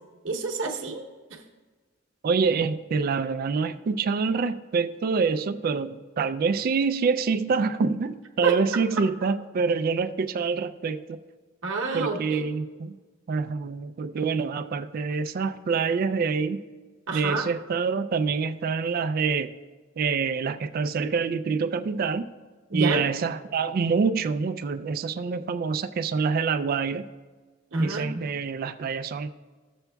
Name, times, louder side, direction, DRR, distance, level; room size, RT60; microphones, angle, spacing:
voice 1, 0.2-1.0 1.3-1.4 8.4-8.5 8.9-9.0 11.6-12.4 17.1-17.5 22.7-23.0 27.7-28.0, right 3 dB, 70° right, -1 dB, 0.9 m, -28 dB
voice 2, 2.2-11.2 11.9-13.0 13.3-16.6 17.1-19.5 20.0-22.3 22.7-27.1 27.8-29.3, right 5 dB, 50° right, 9 dB, 0.3 m, -26 dB
14.0 x 7.0 x 2.3 m, 1.4 s
head